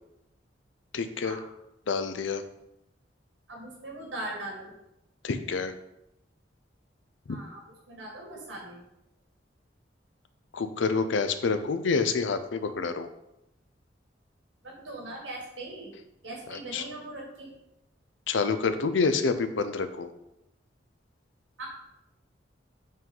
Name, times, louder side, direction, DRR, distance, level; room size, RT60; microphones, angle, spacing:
voice 1, 0.9-1.4 1.9-2.4 5.2-5.7 7.3-7.4 10.5-13.1 16.5-16.8 18.3-20.1, left 4 dB, 90° left, 10 dB, 0.5 m, -28 dB
voice 2, 3.5-4.7 7.3-8.8 14.6-16.0 16.2-17.5 21.6-21.7, right 2 dB, 85° right, -2 dB, 2.1 m, -40 dB
5.3 x 3.8 x 5.3 m, 0.86 s
head